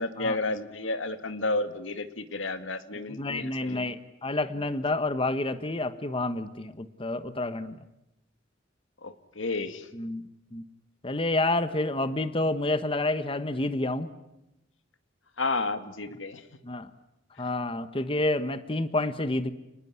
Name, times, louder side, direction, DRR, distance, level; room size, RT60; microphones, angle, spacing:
voice 1, 0.0-3.9 9.0-9.9 15.4-16.4, left 2 dB, 85° left, 10 dB, 2.1 m, -31 dB
voice 2, 3.1-7.8 10.0-10.2 10.5-10.6 11.0-14.1 16.6-16.9 17.4-19.5, left 2 dB, 30° left, 11 dB, 1.2 m, -29 dB
29.5 x 20.0 x 9.7 m, 0.88 s
head